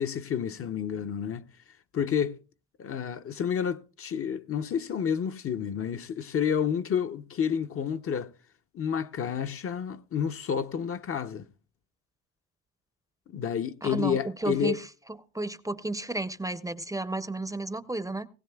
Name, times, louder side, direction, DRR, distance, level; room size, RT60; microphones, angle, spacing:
voice 1, 0.0-1.4 1.9-2.4 2.8-8.3 8.7-11.5 13.3-14.8, left 8 dB, 50° left, 0.6 m, -30 dB
voice 2, 13.8-14.8 15.3-18.3, right 2 dB, 10° right, 0.5 m, -32 dB
19.0 x 16.5 x 2.3 m
cardioid pair, 90°, 30 cm